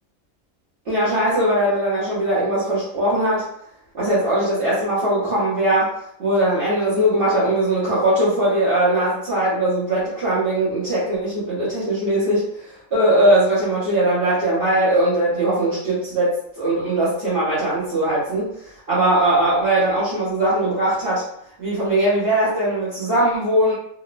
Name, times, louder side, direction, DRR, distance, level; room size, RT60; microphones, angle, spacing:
voice 1, 0.9-3.5 3.9-5.9 6.2-18.5 18.9-21.2 21.6-23.7, right 1 dB, 50° right, -9 dB, 1.0 m, -20 dB
2.9 x 2.1 x 2.4 m, 0.71 s
omnidirectional pair, 1.4 m